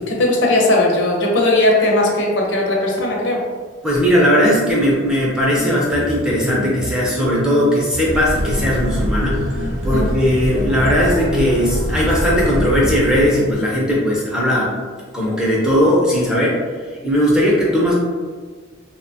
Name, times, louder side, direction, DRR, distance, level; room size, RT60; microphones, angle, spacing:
voice 1, 0.0-3.4 9.9-10.2, left 1 dB, 65° left, -2 dB, 0.6 m, -17 dB
voice 2, 3.8-14.7 15.1-16.6 17.0-17.9, equal, 5° right, -5 dB, 0.4 m, -18 dB
sound 1, 5.5-13.5, left 1 dB, 75° right, 0.5 m, -28 dB
sound 2, 8.0-13.3, equal, 40° right, 0.6 m, -24 dB
2.7 x 2.1 x 2.7 m, 1.5 s
head